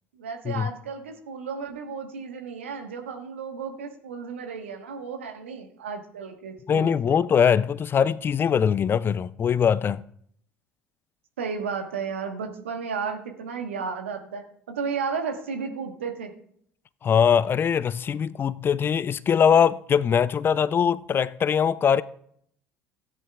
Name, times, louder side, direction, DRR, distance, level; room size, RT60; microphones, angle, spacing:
voice 1, 0.1-7.2 11.4-16.3, right 5 dB, 75° right, 1.4 m, -33 dB
voice 2, 6.7-10.0 17.0-22.0, left 7 dB, 35° left, 0.4 m, -22 dB
16.5 x 10.0 x 2.4 m
figure-of-eight pair, 60°, 7 cm